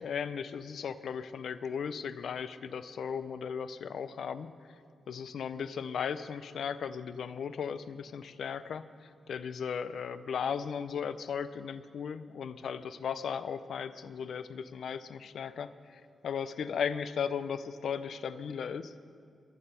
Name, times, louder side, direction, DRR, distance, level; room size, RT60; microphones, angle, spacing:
voice 1, 0.0-4.5 5.1-18.9, left 7 dB, 70° left, 13 dB, 0.5 m, -36 dB
22.5 x 8.8 x 5.6 m, 2.4 s
wide cardioid pair, 150°, 0 cm